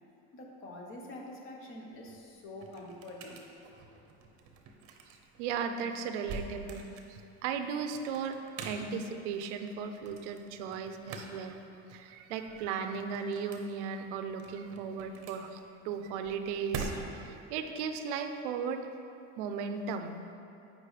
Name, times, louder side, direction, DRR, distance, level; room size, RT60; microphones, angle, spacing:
voice 1, 0.3-3.4, left 1 dB, 35° left, 0 dB, 1.0 m, -46 dB
sound 1, 1.9-17.4, right 4 dB, 40° right, 0.8 m, -46 dB
voice 2, 5.4-8.4 8.6-11.6 11.9-18.8 19.4-20.2, right 6 dB, 85° right, 7 dB, 0.6 m, -36 dB
8.4 x 5.2 x 3.2 m, 2.7 s
cardioid pair, 145°, 34 cm